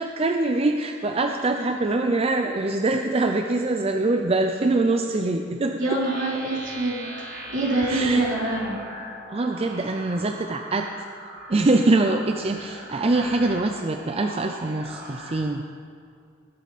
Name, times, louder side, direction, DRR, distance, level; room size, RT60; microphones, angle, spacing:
voice 1, 0.0-6.0 7.9-8.2 9.3-10.9 11.5-15.6, right 2 dB, 30° right, 4 dB, 0.5 m, -24 dB
voice 2, 5.8-7.0 7.5-8.8, right 2 dB, 70° right, -5 dB, 3.5 m, -25 dB
sound 1, 5.9-15.4, right 1 dB, 50° right, 3.8 m, -39 dB
19.5 x 8.0 x 4.2 m, 2.3 s
head